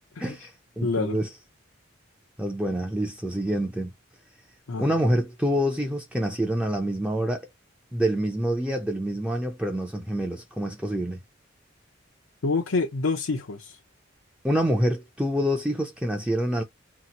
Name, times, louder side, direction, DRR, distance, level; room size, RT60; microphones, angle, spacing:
voice 1, 0.2-1.3 2.4-3.9 4.8-7.5 7.9-11.2 14.4-16.6, equal, 5° right, 0.4 m, -26 dB
voice 2, 0.8-1.2 4.7-4.9 12.4-13.8, left 3 dB, 90° left, 0.6 m, -27 dB
2.9 x 2.0 x 3.9 m
head